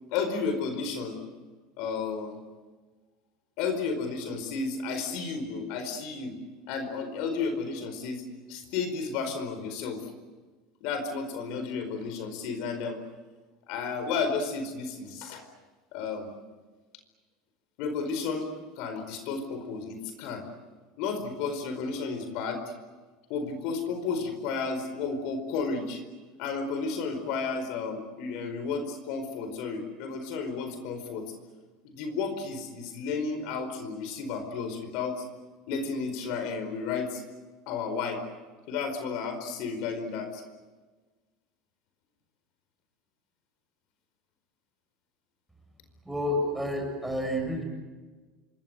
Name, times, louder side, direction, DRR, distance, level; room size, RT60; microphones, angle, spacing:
voice 1, 0.1-1.2 1.8-2.4 3.6-6.4 6.7-8.2 8.5-10.1 10.8-13.0 13.7-15.5 15.9-16.3 17.8-18.5 18.8-20.5 21.0-22.7 23.3-26.0 26.4-31.3 31.8-35.2 35.7-37.2 37.7-38.2 38.7-40.4, left 4 dB, 65° left, 7 dB, 4.7 m, -32 dB
voice 2, 46.0-47.6, left 1 dB, 5° right, 2 dB, 8.0 m, -29 dB
27.5 x 24.0 x 8.0 m, 1.3 s
supercardioid pair, 130°, 0 cm